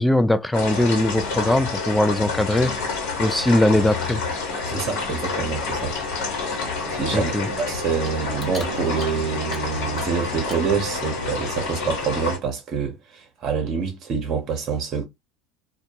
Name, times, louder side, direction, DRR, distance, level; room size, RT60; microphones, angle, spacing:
voice 1, 0.0-2.8 3.2-4.2 7.1-7.5, left 1 dB, 5° left, 0.3 m, -20 dB
sound 1, 0.5-12.4, left 4 dB, 70° left, 1.0 m, -28 dB
voice 2, 4.6-5.9 6.9-7.3 7.6-15.0, right 6 dB, 45° right, 0.8 m, -26 dB
Clock, 5.3-10.8, left 2 dB, 25° left, 0.9 m, -45 dB
sound 2, 6.6-11.6, right 7 dB, 80° right, 0.4 m, -40 dB
2.2 x 2.1 x 2.8 m
hypercardioid pair, 80°, 0 cm